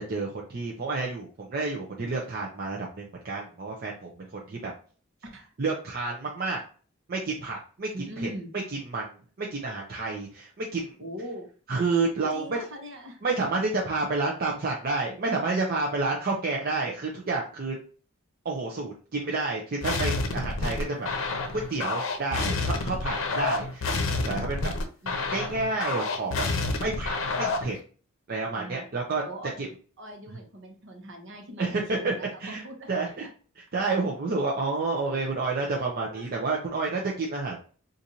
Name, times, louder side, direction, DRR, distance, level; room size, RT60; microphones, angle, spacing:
voice 1, 0.0-4.7 5.6-6.6 7.1-7.9 8.2-8.3 8.9-10.9 11.7-12.6 13.2-17.8 18.4-23.9 24.3-24.7 25.3-26.5 26.8-27.8 28.3-29.2 29.6-29.7 31.6-32.1 32.4-33.3 33.6-37.6, right 3 dB, 50° right, -2 dB, 0.6 m, -30 dB
voice 2, 7.9-8.5 11.0-11.5 12.3-13.2 25.0-25.3 28.5-28.9 29.2-29.6 30.0-33.3 33.8-33.9 35.0-35.2 36.1-36.3, equal, 65° right, 2 dB, 1.0 m, -41 dB
sound 1, 19.8-27.8, left 3 dB, 70° left, 0.6 m, -29 dB
4.0 x 2.6 x 2.8 m, 0.40 s
head